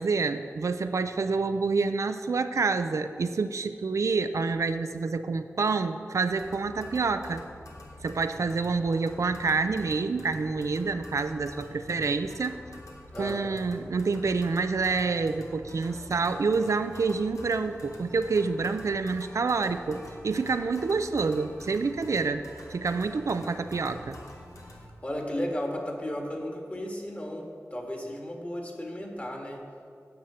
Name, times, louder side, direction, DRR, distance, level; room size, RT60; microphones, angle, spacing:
voice 1, 0.0-7.4 8.0-12.6 13.2-22.4 22.7-24.2, right 4 dB, 75° right, 9 dB, 0.5 m, -27 dB
sound 1, 6.3-24.9, left 1 dB, 90° left, 1.4 m, -47 dB
voice 2, 13.1-13.5 25.0-29.6, left 1 dB, 25° left, 1 dB, 1.8 m, -34 dB
9.3 x 5.6 x 8.2 m, 2.2 s
wide cardioid pair, 60°, 5 cm